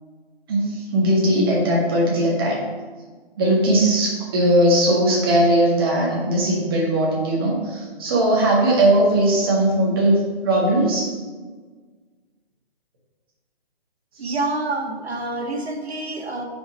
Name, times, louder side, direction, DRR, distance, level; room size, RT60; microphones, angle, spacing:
voice 1, 0.5-2.6 3.4-11.1, right 1 dB, 20° right, -3 dB, 1.6 m, -19 dB
voice 2, 14.2-16.4, right 2 dB, 85° right, 2 dB, 1.7 m, -27 dB
6.5 x 5.6 x 5.2 m, 1.4 s
hypercardioid pair, 170°, 31 cm